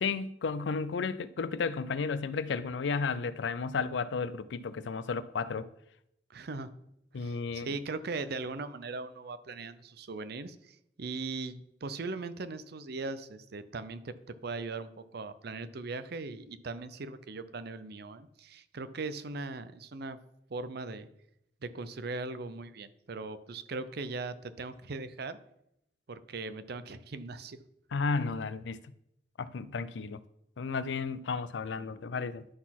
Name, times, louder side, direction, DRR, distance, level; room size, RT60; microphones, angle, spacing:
voice 1, 0.0-5.7 7.1-7.7 27.9-28.8 29.4-30.2 30.6-32.5, left 4 dB, 80° left, 0.5 m, -33 dB
voice 2, 6.3-6.7 7.1-20.2 20.5-21.1 21.6-25.4 26.1-27.6, right 3 dB, 60° right, 0.6 m, -39 dB
11.0 x 4.1 x 5.9 m
head